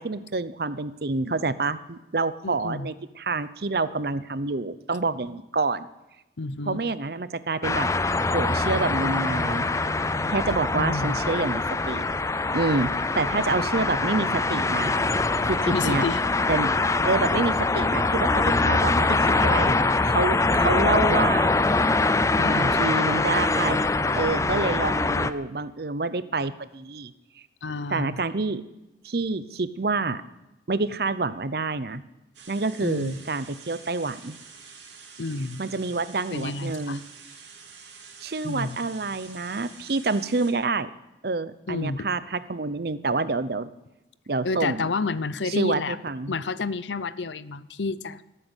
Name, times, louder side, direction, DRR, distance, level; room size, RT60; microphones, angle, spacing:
voice 1, 0.0-5.9 6.6-7.9 8.3-9.7 10.3-12.0 12.5-15.0 15.4-16.0 16.5-16.7 17.0-21.5 22.5-23.8 24.1-27.1 27.9-28.6 29.0-30.2 30.7-32.0 32.5-34.4 35.6-37.0 38.2-40.9 41.2-43.7 44.3-44.9 45.4-46.4, right 3 dB, 60° right, 14 dB, 0.7 m, -27 dB
voice 2, 2.4-2.9 6.4-6.8 10.8-11.2 15.7-16.2 22.4-23.4 27.6-28.2 32.8-33.2 35.2-35.6 36.3-37.0 38.4-38.8 41.7-42.1 44.4-46.0 46.3-48.2, left 3 dB, 85° left, 16 dB, 0.7 m, -30 dB
sound 1, 7.6-25.3, left 3 dB, 15° left, 0.5 m, -23 dB
sound 2, 32.3-40.5, right 5 dB, 85° right, 2.9 m, -47 dB
18.0 x 9.0 x 8.2 m, 0.96 s
head